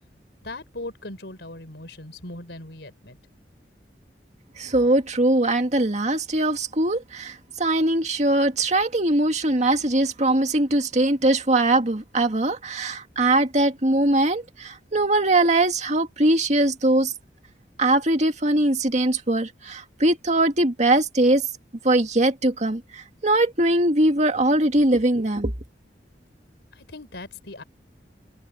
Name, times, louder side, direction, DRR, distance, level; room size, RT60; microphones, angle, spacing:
voice 1, 0.4-3.2 26.7-27.6, left 2 dB, 80° left, 4.0 m, -39 dB
voice 2, 4.6-17.1 17.8-21.4 21.8-25.5, right 1 dB, 40° right, 2.1 m, -21 dB
head